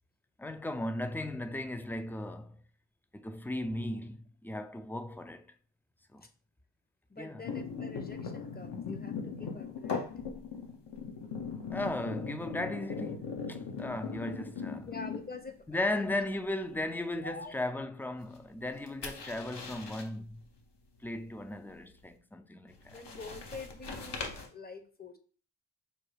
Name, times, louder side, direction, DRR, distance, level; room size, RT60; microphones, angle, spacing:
voice 1, 0.4-2.6 3.1-5.5 6.1-6.2 7.2-7.4 11.7-14.9 15.7-20.4 21.0-23.0, left 1 dB, 5° left, 0.3 m, -36 dB
voice 2, 7.1-10.1 14.9-16.2 17.2-17.5 22.9-25.2, left 3 dB, 25° left, 0.7 m, -46 dB
sound 1, 7.4-15.6 15.9-16.3 18.6-20.1 22.7-24.5, left 5 dB, 75° left, 0.9 m, -39 dB
5.3 x 2.3 x 3.2 m
cardioid pair, 45°, 42 cm